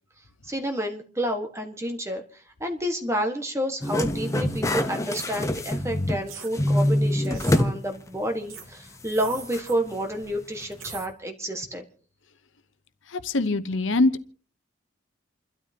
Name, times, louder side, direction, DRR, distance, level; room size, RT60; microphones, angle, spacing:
voice 1, 0.4-2.2 2.6-11.8, equal, 15° right, 4 dB, 1.6 m, -30 dB
sound 1, 3.8-6.3 6.5-7.8 8.1-8.2 9.5-9.6, left 1 dB, 15° left, 0.9 m, -24 dB
sound 2, 5.1-5.3 6.3-6.5 7.2-7.6 8.5-8.7 9.1-9.8 10.7-11.1, right 6 dB, 90° right, 2.9 m, -40 dB
voice 2, 13.1-14.1, left 2 dB, 70° left, 12 dB, 0.9 m, -23 dB
29.0 x 12.5 x 2.9 m, 0.42 s
head